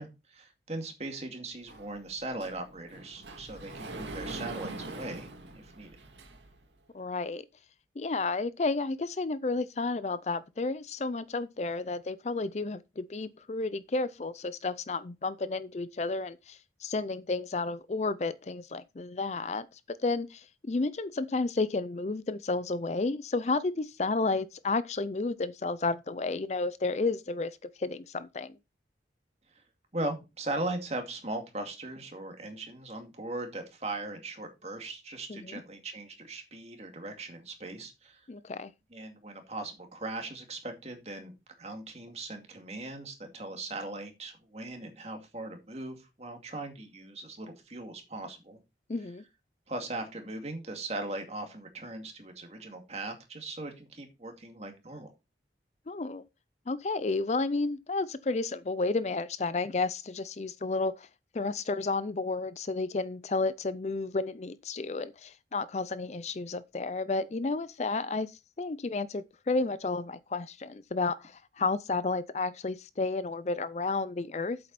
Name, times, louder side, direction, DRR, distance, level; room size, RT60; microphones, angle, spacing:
voice 1, 0.0-6.0 29.9-38.3 38.9-41.3 41.6-48.6 49.7-55.1, right 2 dB, 35° right, 2.3 m, -39 dB
Sliding door, 1.7-6.6, right 2 dB, 85° right, 2.0 m, -43 dB
voice 2, 6.9-7.4 8.0-28.6 35.3-35.6 38.3-38.7 48.9-49.2 55.9-56.2 56.7-61.1 61.3-74.6, left 3 dB, 40° left, 0.4 m, -32 dB
8.5 x 7.7 x 4.1 m
head